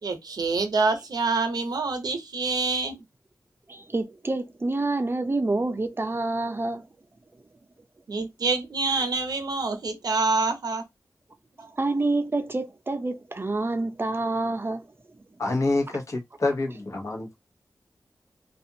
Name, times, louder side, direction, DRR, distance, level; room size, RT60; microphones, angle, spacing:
voice 1, 0.0-3.0 8.1-10.8, right 3 dB, 75° right, 0.7 m, -26 dB
voice 2, 3.7-6.8 11.6-14.9, right 2 dB, 35° right, 0.6 m, -27 dB
voice 3, 15.4-17.3, left 2 dB, 50° left, 1.0 m, -27 dB
2.5 x 2.3 x 2.7 m
cardioid pair, 50°, 7 cm